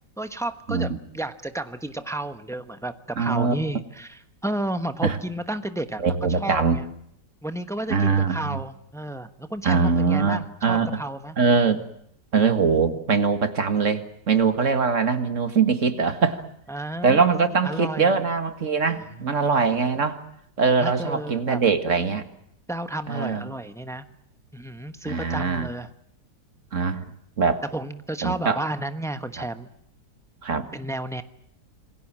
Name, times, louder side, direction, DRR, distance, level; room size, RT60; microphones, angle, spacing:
voice 1, 0.0-6.9 7.4-11.4 16.7-18.3 18.8-19.4 20.7-21.6 22.7-24.0 24.5-25.9 27.7-29.7 30.7-31.2, right 1 dB, ahead, 9 dB, 0.8 m, -32 dB
voice 2, 3.2-3.5 5.0-5.2 6.0-6.8 7.9-8.6 9.6-10.9 11.4-11.8 12.3-16.4 17.0-20.2 20.6-22.2 23.1-23.4 25.1-25.7 26.7-27.0 27.4-27.6 28.2-28.6 30.4-30.7, right 5 dB, 45° right, 8 dB, 2.1 m, -22 dB
27.5 x 21.0 x 7.5 m, 0.72 s
omnidirectional pair, 1.9 m